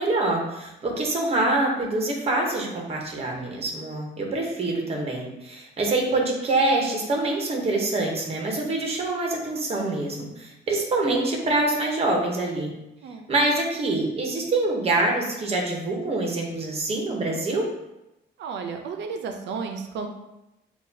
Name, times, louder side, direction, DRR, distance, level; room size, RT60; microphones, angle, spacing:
voice 1, 0.0-12.7 13.3-17.7, right 2 dB, 35° right, 0 dB, 0.9 m, -25 dB
voice 2, 18.4-20.1, right 5 dB, 85° right, 5 dB, 0.6 m, -33 dB
6.4 x 2.4 x 2.7 m, 0.93 s
cardioid pair, 155°, 18 cm